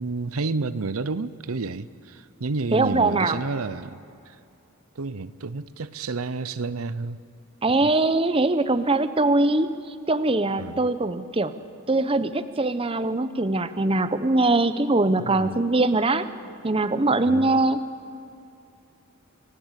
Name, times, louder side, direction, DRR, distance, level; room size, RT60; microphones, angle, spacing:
voice 1, 0.0-4.0 4.3-4.4 5.0-7.2 7.8-7.9 10.6-10.8 15.2-15.5 17.2-17.6, right 3 dB, 75° right, 0.7 m, -30 dB
voice 2, 2.7-3.4 7.6-9.7 10.1-11.5 11.9-16.3 16.6-17.9, right 2 dB, 25° right, 0.8 m, -22 dB
30.0 x 17.0 x 8.2 m
head